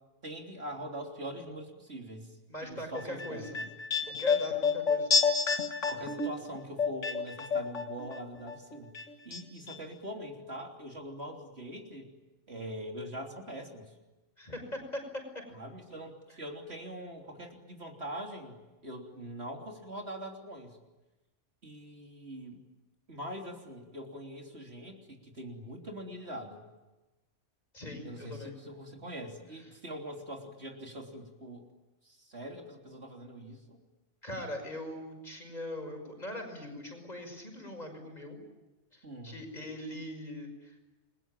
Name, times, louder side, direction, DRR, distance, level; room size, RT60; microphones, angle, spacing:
voice 1, 0.2-2.3 2.6-3.7 5.9-8.9 9.3-12.1 12.5-13.9 15.5-18.6 18.8-20.8 21.6-22.6 23.1-26.6 28.0-31.7 32.0-33.8 39.0-39.4, equal, 55° right, 2 dB, 3.7 m, -43 dB
voice 2, 2.5-3.6 4.2-5.1 14.4-15.0 27.7-28.5 34.2-38.4 38.9-40.8, left 1 dB, 35° left, 3 dB, 6.0 m, -41 dB
sound 1, 3.0-8.2 8.5-9.4 9.7-9.8, left 5 dB, 70° left, 2.2 m, -29 dB
29.0 x 22.5 x 9.0 m, 1.1 s
omnidirectional pair, 1.3 m